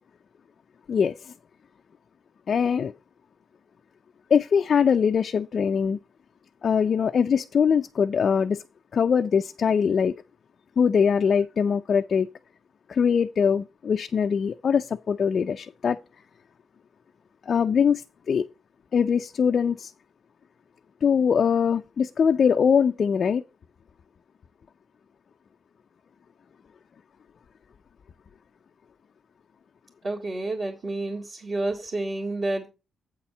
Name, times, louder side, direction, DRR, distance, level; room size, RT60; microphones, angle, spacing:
voice 1, 0.9-1.3 2.5-2.9 4.3-6.0 6.6-8.6 8.9-10.1 10.8-12.3 12.9-16.0 17.5-18.5 18.9-19.9 21.0-23.4, left 6 dB, 45° left, 0.4 m, -22 dB
voice 2, 30.0-32.7, right 2 dB, 40° right, 2.1 m, -29 dB
8.5 x 4.3 x 6.8 m
cardioid pair, 140°, 0 cm